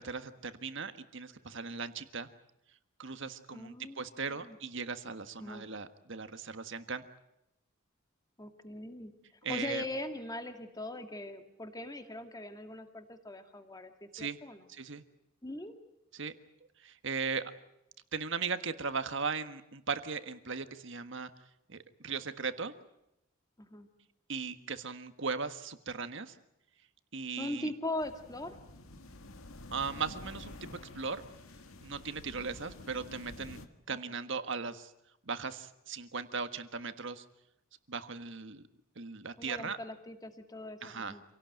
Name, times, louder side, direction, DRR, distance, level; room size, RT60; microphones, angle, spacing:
voice 1, 0.0-2.3 3.0-7.0 9.4-9.8 14.1-14.4 14.7-15.0 16.1-16.3 16.8-17.5 18.1-21.3 21.7-22.7 24.3-26.3 27.1-27.7 29.7-31.2 31.8-33.6 33.9-34.9 35.2-37.2 37.9-38.6 38.9-39.8 40.8-41.2, right 5 dB, 60° right, 10 dB, 1.5 m, -38 dB
voice 2, 3.5-4.0 4.3-4.6 5.4-5.7 8.4-9.1 9.5-14.6 15.4-15.8 23.6-23.9 27.4-28.6 33.9-34.0 39.4-41.2, left 1 dB, 20° left, 6 dB, 2.1 m, -41 dB
sound 1, 28.0-33.7, left 2 dB, 85° left, 1.8 m, -49 dB
27.0 x 18.0 x 9.2 m, 0.86 s
head